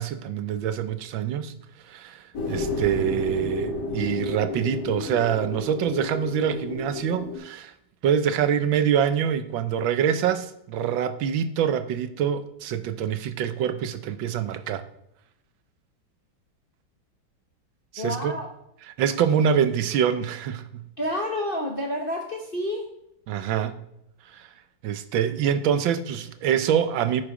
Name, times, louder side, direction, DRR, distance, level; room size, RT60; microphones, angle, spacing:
voice 1, 0.0-1.5 1.9-7.7 8.0-14.8 17.9-18.3 19.0-20.8 23.3-23.8 24.3-24.5 24.8-27.2, right 8 dB, 75° right, 11 dB, 1.5 m, -25 dB
sound 1, 2.3-7.4, left 3 dB, 55° left, 2.1 m, -31 dB
voice 2, 18.0-18.5 21.0-22.9, left 1 dB, 35° left, 0 dB, 1.0 m, -29 dB
11.0 x 6.9 x 4.9 m, 0.80 s
omnidirectional pair, 2.2 m